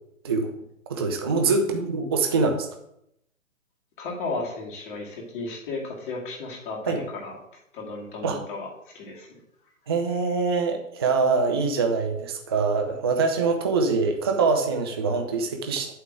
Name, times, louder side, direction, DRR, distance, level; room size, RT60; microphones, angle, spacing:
voice 1, 0.9-2.7 6.9-7.0 8.2-8.4 9.9-15.9, right 4 dB, 20° right, 5 dB, 0.4 m, -24 dB
voice 2, 4.0-7.3 7.7-9.4, left 3 dB, 40° left, -2 dB, 2.4 m, -34 dB
8.5 x 3.7 x 6.1 m, 0.76 s
figure-of-eight pair, 135°, 40 cm